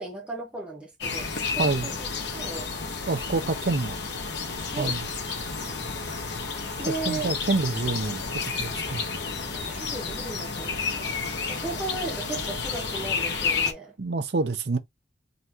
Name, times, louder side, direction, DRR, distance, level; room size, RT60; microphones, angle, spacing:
voice 1, 0.0-2.1 2.3-2.7 4.6-5.0 5.6-6.4 6.8-7.3 9.5-11.2 11.5-13.9, right 3 dB, 5° right, 1.1 m, -36 dB
sound 1, 1.0-13.7, left 4 dB, 65° left, 1.0 m, -31 dB
voice 2, 3.1-4.0 4.8-5.0 6.9-9.0 14.0-14.8, right 3 dB, 55° right, 0.6 m, -27 dB
3.9 x 3.2 x 2.9 m
head